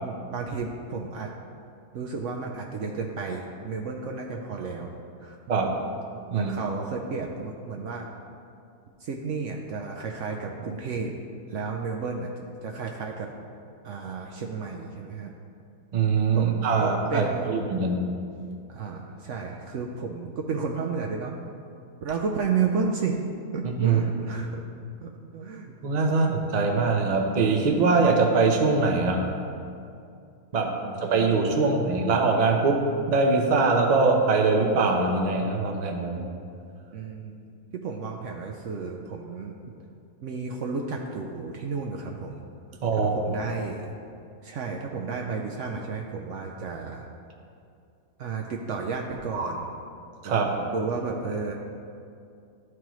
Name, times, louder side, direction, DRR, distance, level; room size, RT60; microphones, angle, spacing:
voice 1, 0.0-1.3 1.9-4.9 5.2-5.4 6.3-8.1 9.0-11.1 11.5-12.3 12.6-13.3 13.8-15.3 16.3-17.6 18.7-21.3 22.0-23.2 23.5-24.6 25.0-25.7 26.1-26.2 30.8-31.1 36.9-37.4 37.7-39.5 40.2-42.4 43.1-43.9 44.4-47.1 48.2-49.7 50.2-51.6, right 5 dB, 65° right, 1 dB, 0.8 m, -32 dB
voice 2, 15.9-18.1 23.8-24.0 25.8-29.2 30.5-30.7 31.0-36.2 42.8-43.1 50.2-50.5, right 4 dB, 40° right, 1 dB, 0.6 m, -22 dB
12.5 x 4.7 x 3.0 m, 2.5 s
omnidirectional pair, 1.6 m